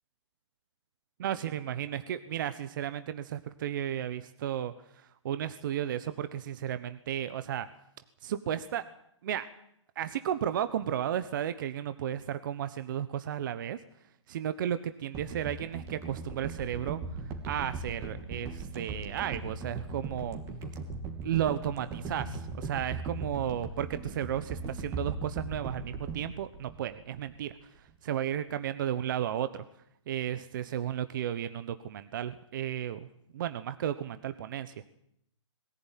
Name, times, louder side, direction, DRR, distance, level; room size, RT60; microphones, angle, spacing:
voice 1, 1.2-4.7 5.2-7.7 8.2-8.8 9.2-9.5 10.0-13.8 14.3-17.0 17.5-20.4 21.2-27.5 28.0-29.6 30.1-33.1 33.3-34.7, right 10 dB, 40° right, 12 dB, 1.1 m, -33 dB
sound 1, 15.1-27.5 27.8-27.9, right 3 dB, 20° right, 2.8 m, -39 dB
21.5 x 15.5 x 9.2 m, 0.75 s
hypercardioid pair, 150°, 16 cm